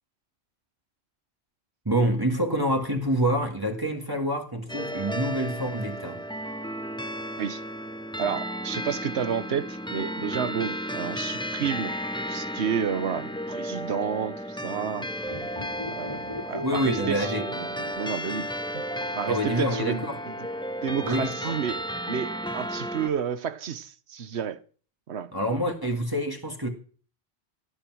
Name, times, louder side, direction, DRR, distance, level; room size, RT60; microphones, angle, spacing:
voice 1, 1.9-6.3 16.6-17.5 19.3-20.2 21.0-21.6 25.3-26.7, equal, 20° right, 1.9 m, -27 dB
sound 1, 4.7-23.1, equal, 5° left, 0.7 m, -33 dB
voice 2, 8.2-11.9 12.3-15.1 16.0-17.7 17.9-18.8 19.1-20.0 20.8-21.8 22.1-24.6 25.1-25.3, right 7 dB, 85° right, 1.2 m, -30 dB
sound 2, 15.2-18.6 18.9-19.0, left 2 dB, 30° left, 2.6 m, -39 dB
17.5 x 10.0 x 6.2 m
omnidirectional pair, 1.1 m